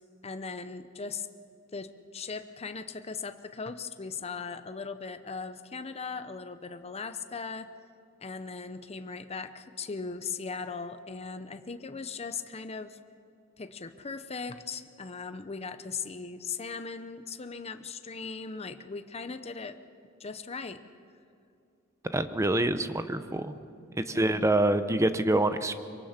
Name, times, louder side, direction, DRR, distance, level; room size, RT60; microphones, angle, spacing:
voice 1, 0.2-1.3 1.7-7.7 8.2-13.0 13.6-19.8 20.2-20.8 24.0-24.3, left 5 dB, 30° left, 9 dB, 0.7 m, -38 dB
voice 2, 22.1-23.6 24.0-25.7, right 1 dB, 15° right, 10 dB, 0.8 m, -26 dB
24.0 x 22.5 x 5.9 m, 2.4 s
head